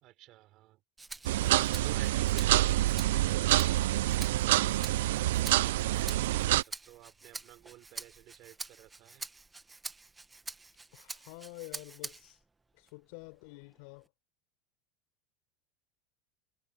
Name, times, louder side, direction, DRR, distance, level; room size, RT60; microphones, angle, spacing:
voice 1, 0.0-0.8 1.2-3.5 6.1-9.3, right 16 dB, 40° right, 3.7 m, -52 dB
Rattle (instrument), 1.0-12.4 12.9-14.1, right 3 dB, 10° right, 1.4 m, -47 dB
sound 1, 1.2-6.6, right 15 dB, 90° right, 0.4 m, -27 dB
voice 2, 4.4-5.1 10.9-12.4 12.8-14.1, left 28 dB, 60° left, 4.4 m, -49 dB
supercardioid pair, 170°, 0 cm